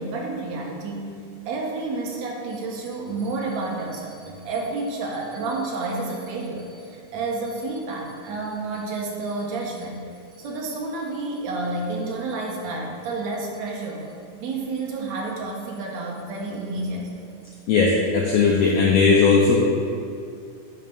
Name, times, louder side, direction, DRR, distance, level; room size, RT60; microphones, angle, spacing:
voice 1, 0.0-10.0 10.3-14.1 14.4-17.3, right 3 dB, 75° right, -1 dB, 1.9 m, -30 dB
voice 2, 17.7-19.6, left 4 dB, 80° left, -2 dB, 1.4 m, -17 dB
8.7 x 3.2 x 5.2 m, 2.4 s
omnidirectional pair, 3.5 m